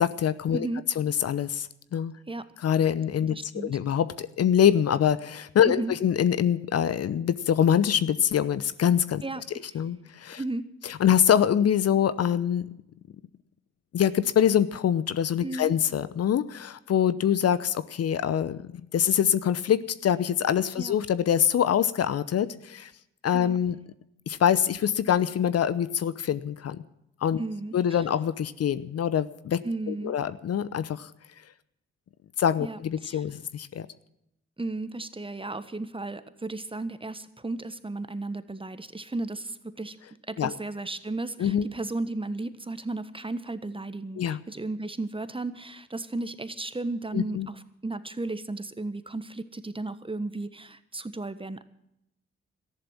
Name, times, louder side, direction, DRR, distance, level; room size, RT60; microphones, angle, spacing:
voice 1, 0.0-0.7 1.0-2.2 2.6-9.2 9.7-10.4 10.8-12.7 13.9-22.9 23.2-23.8 24.3-26.8 27.2-27.4 27.7-29.6 29.9-31.1 32.4-33.9 40.4-40.5 41.4-41.7 44.2-44.4 47.1-47.5, left 9 dB, 55° left, 15 dB, 0.8 m, -24 dB
voice 2, 3.3-3.8 5.6-5.9 9.2-9.4 10.4-10.7 15.4-15.7 20.8-20.9 23.3-23.6 27.4-27.7 29.6-30.1 32.6-33.2 34.6-40.0 40.3-51.6, right 2 dB, 20° right, 13 dB, 1.3 m, -34 dB
14.0 x 11.0 x 7.3 m, 0.81 s
hypercardioid pair, 40°, 29 cm